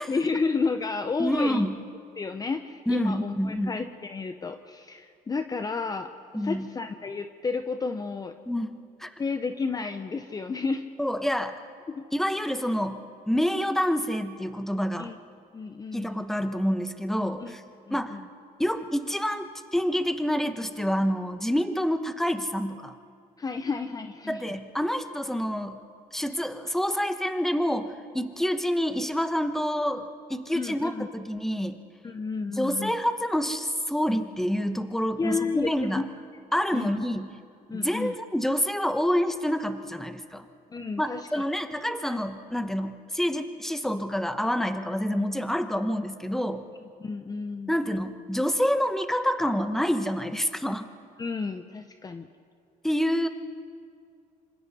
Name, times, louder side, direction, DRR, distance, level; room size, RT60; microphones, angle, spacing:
voice 1, 0.1-1.7 2.2-8.4 9.2-10.9 11.9-12.0 15.0-15.2 15.5-16.1 17.4-17.5 17.9-18.2 23.4-24.4 30.5-31.1 32.0-33.0 35.2-36.0 36.7-37.0 37.7-38.1 40.7-41.4 47.0-47.7 51.2-52.3, left 4 dB, 25° left, 8 dB, 0.7 m, -31 dB
voice 2, 1.2-1.7 2.9-3.8 6.3-6.7 8.5-9.1 11.0-11.6 12.1-15.1 15.9-17.6 17.9-18.2 18.6-23.0 24.3-25.8 26.1-31.8 32.5-36.0 36.5-37.3 37.7-40.4 41.0-46.6 47.7-50.9 52.8-53.3, equal, ahead, 8 dB, 1.1 m, -27 dB
26.0 x 26.0 x 4.2 m, 2.3 s
cardioid pair, 115°, 15 cm